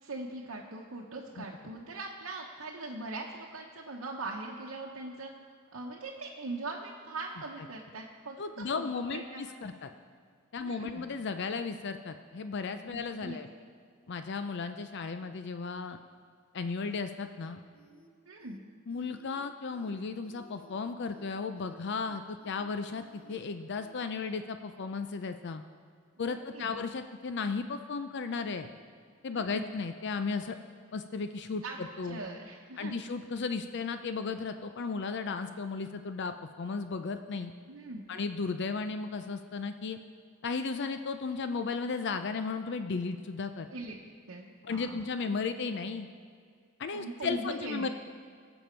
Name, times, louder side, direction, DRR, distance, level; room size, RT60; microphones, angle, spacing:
voice 1, 0.0-5.3 5.7-8.4 8.7-9.4 10.6-11.0 12.9-13.4 18.3-18.6 26.3-26.8 29.3-29.7 31.6-31.8 32.0-33.0 37.7-38.1 43.7-44.0 44.3-45.1 46.9-47.9, right 2 dB, 80° right, -2 dB, 0.9 m, -41 dB
voice 2, 8.4-9.9 10.5-13.5 14.1-16.0 16.5-17.6 18.9-23.0 23.3-25.6 26.2-28.7 29.2-30.6 30.9-32.2 32.8-37.5 38.1-40.0 40.4-43.7 44.6-46.1 46.8-47.9, left 4 dB, 55° left, 9 dB, 0.5 m, -35 dB
sound 1, 17.7-18.1 18.4-18.6 18.9-19.4 19.7-19.9 20.2-20.7 21.1-21.2 21.6-22.1 22.4-22.6 22.9-23.4 23.7-23.9, left 1 dB, 75° left, 1.3 m, -59 dB
18.0 x 7.1 x 4.5 m, 2.1 s
head